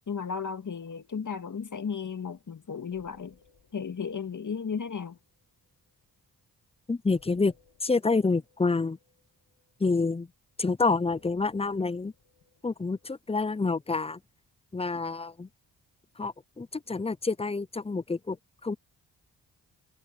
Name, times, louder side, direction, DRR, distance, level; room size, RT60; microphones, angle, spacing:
voice 1, 0.1-3.4 3.7-5.2, left 6 dB, 50° left, 2.2 m, -34 dB
sound 1, 2.4-2.5 2.8-6.2 7.1-10.7 11.1-13.6, left 5 dB, 70° left, 6.3 m, -64 dB
voice 2, 6.9-7.5 7.8-9.0 9.8-10.3 10.6-12.1 12.6-14.2 14.7-15.5 16.2-18.4 18.6-18.8, left 3 dB, 15° left, 0.6 m, -28 dB
supercardioid pair, 50°, 40 cm